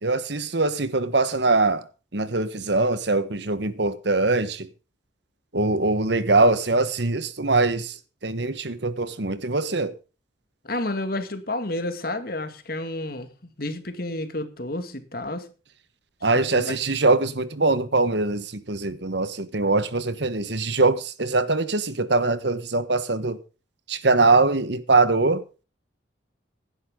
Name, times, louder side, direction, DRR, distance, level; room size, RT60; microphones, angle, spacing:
voice 1, 0.0-1.8 2.1-4.7 5.5-7.9 8.2-9.9 16.2-23.4 23.9-25.4, right 3 dB, 65° right, 1.3 m, -22 dB
voice 2, 10.6-13.3 13.6-15.5 16.4-16.8, left 1 dB, 50° left, 2.2 m, -30 dB
16.5 x 11.0 x 3.8 m
head